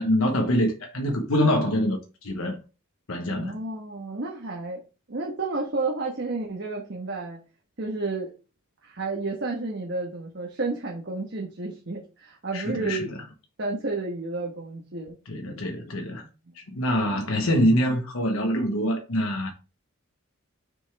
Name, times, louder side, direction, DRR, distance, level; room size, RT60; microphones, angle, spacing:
voice 1, 0.0-2.6 3.1-3.6 12.5-13.1 15.3-16.3 16.5-19.5, equal, 85° left, 1.1 m, -25 dB
voice 2, 3.3-4.8 5.1-7.4 7.8-8.3 8.8-13.1 13.6-15.2 16.5-16.6, right 3 dB, 55° right, 1.3 m, -31 dB
6.1 x 5.4 x 3.4 m
head